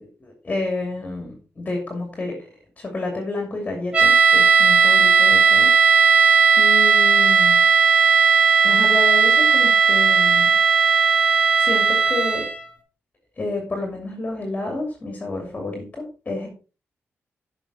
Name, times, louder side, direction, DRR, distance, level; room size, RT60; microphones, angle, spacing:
voice 1, 0.2-2.5 2.8-6.2 6.6-7.6 8.6-10.5 11.1-11.3 11.6-12.5 13.4-16.5, left 2 dB, 25° left, 3 dB, 2.8 m, -30 dB
sound 1, 3.9-12.6, right 5 dB, 25° right, 1.6 m, -16 dB
13.0 x 5.6 x 4.2 m, 0.34 s
wide cardioid pair, 175°, 5 cm